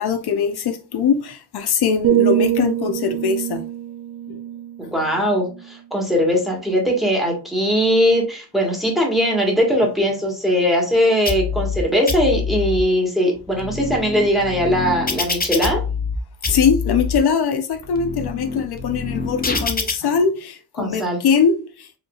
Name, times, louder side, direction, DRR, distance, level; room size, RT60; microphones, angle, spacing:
voice 1, 0.0-3.6 4.3-4.4 16.5-21.9, left 6 dB, 75° left, 0.7 m, -21 dB
sound 1, 2.0-6.0 6.4-6.7, right 11 dB, 60° right, 0.5 m, -24 dB
voice 2, 4.8-15.8 20.8-21.2, equal, ahead, 1.5 m, -20 dB
sound 2, 11.3-11.8 12.1-12.8 13.4-16.2 16.4-17.2 17.7-19.9, left 5 dB, 25° left, 0.6 m, -26 dB
5.0 x 3.0 x 2.4 m
wide cardioid pair, 140°, 39 cm